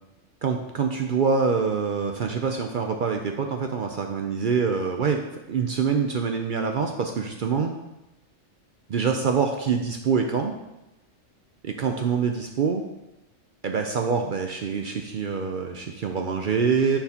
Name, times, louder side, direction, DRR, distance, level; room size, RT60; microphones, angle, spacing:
voice 1, 0.4-5.2 5.5-7.7 8.9-10.6 11.6-12.8 13.6-17.0, right 5 dB, 60° right, 4 dB, 0.5 m, -25 dB
10.0 x 4.6 x 2.8 m, 0.94 s
omnidirectional pair, 1.4 m